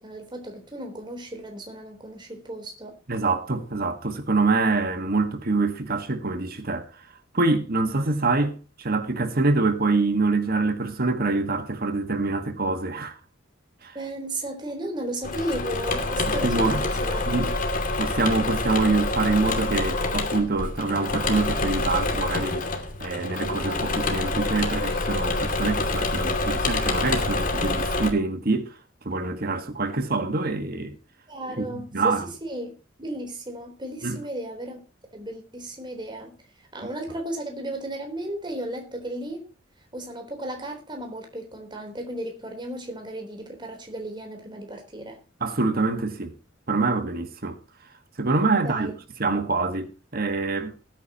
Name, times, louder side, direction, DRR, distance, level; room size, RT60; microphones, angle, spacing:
voice 1, 0.0-2.9 13.9-17.3 31.3-34.8 35.1-36.3 36.7-39.4 39.9-45.2 48.5-48.9, right 1 dB, 25° right, 3.7 m, -34 dB
voice 2, 3.1-6.9 7.3-13.2 13.8-14.0 16.4-16.8 17.3-17.5 18.0-22.7 23.0-28.8 29.0-31.0 31.6-32.2 34.0-34.2 45.4-46.3 46.7-47.6 48.2-48.9 49.2-50.7, right 3 dB, 50° right, 1.5 m, -25 dB
Engine / Mechanisms, 15.2-28.1, left 2 dB, 45° left, 2.5 m, -27 dB
20.0 x 9.2 x 2.9 m
head